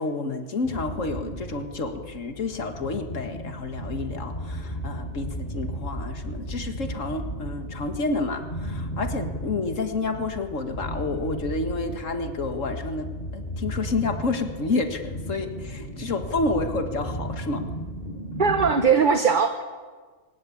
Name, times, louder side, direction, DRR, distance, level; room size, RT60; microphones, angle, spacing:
voice 1, 0.0-17.6, left 3 dB, 90° left, 7 dB, 2.1 m, -29 dB
sound 1, 0.6-18.7, equal, 35° left, 4.3 m, -35 dB
voice 2, 18.4-19.6, right 5 dB, 40° right, 7 dB, 1.5 m, -20 dB
24.0 x 20.5 x 8.7 m, 1.4 s
omnidirectional pair, 1.3 m